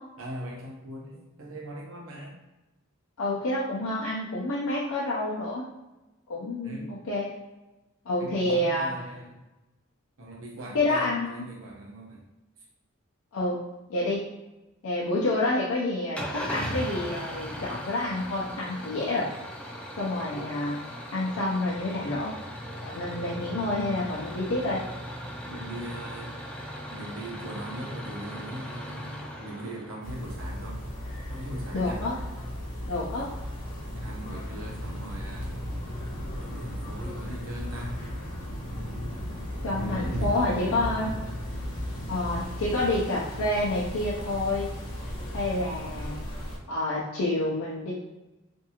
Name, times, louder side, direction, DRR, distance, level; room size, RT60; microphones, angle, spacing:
voice 1, 0.2-2.4 6.6-6.9 8.2-9.4 10.2-12.3 25.5-26.5 26.9-30.8 31.3-32.0 33.1-33.5 33.9-35.5 36.4-38.0 39.8-41.2, right 1 dB, 70° right, -2 dB, 0.7 m, -40 dB
voice 2, 3.2-5.6 6.3-7.3 8.1-8.9 10.7-11.4 13.3-13.6 13.9-14.2 14.8-19.3 20.0-20.8 21.1-22.3 22.8-24.8 31.7-32.1 32.8-33.3 39.6-41.1 42.1-44.7 45.3-46.2 46.7-47.9, left 2 dB, 85° left, -6 dB, 0.5 m, -28 dB
Engine starting / Idling, 16.1-30.3, equal, 5° left, 0.3 m, -38 dB
sound 1, 30.0-46.6, equal, 40° left, 0.7 m, -35 dB
2.6 x 2.3 x 2.8 m, 1.0 s
head